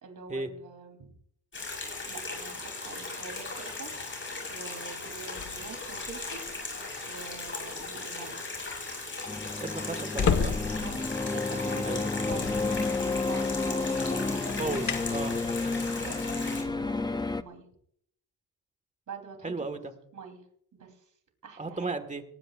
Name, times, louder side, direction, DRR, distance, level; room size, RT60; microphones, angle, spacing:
voice 1, 0.0-1.1 2.1-6.4 7.1-8.5 10.1-10.5 10.8-14.6 15.6-17.7 19.1-19.8 20.1-20.4 20.7-21.1 21.4-21.9, right 5 dB, 50° right, 4 dB, 3.7 m, -45 dB
sound 1, 1.5-16.6, left 3 dB, 30° left, 7.2 m, -38 dB
sound 2, 5.3-6.8 7.5-7.8 9.9-17.0, left 6 dB, 45° left, 1.6 m, -35 dB
sound 3, 9.3-17.4, left 3 dB, 10° left, 0.5 m, -31 dB
voice 2, 9.6-10.5 11.8-12.0 14.6-15.4 19.4-19.9 21.6-22.2, right 3 dB, 20° right, 8 dB, 1.8 m, -34 dB
21.0 x 18.5 x 2.6 m, 0.69 s
cardioid pair, 120°, 40 cm